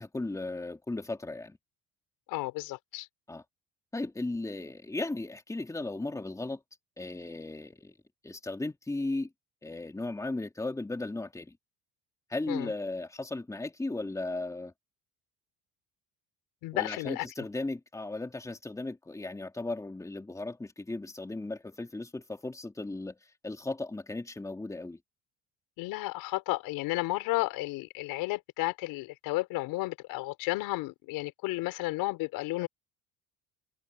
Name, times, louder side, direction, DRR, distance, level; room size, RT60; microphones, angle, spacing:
voice 1, 0.0-1.6 3.3-3.4 3.9-6.6 7.0-7.9 8.2-9.3 9.6-11.5 12.3-14.7 16.7-23.2 23.4-25.0, left 2 dB, 10° left, 3.0 m, -36 dB
voice 2, 2.3-3.1 12.5-12.7 16.6-17.3 25.8-32.7, left 20 dB, 85° left, 6.4 m, -32 dB
open air
cardioid pair, 135°, 34 cm